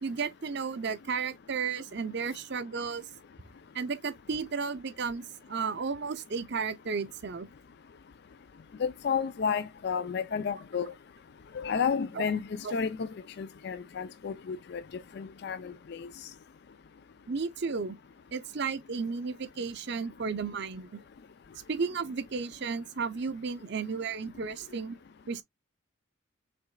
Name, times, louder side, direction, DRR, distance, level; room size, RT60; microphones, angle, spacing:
voice 1, 0.0-3.1 3.7-7.5 12.1-12.2 12.6-12.8 17.3-18.0 18.3-21.0 21.7-25.0 25.3-25.4, right 5 dB, 55° right, 0.6 m, -33 dB
voice 2, 8.8-10.9 11.5-13.1 13.4-14.8 15.2-16.1, left 6 dB, 50° left, 0.4 m, -31 dB
6.0 x 3.6 x 2.2 m
head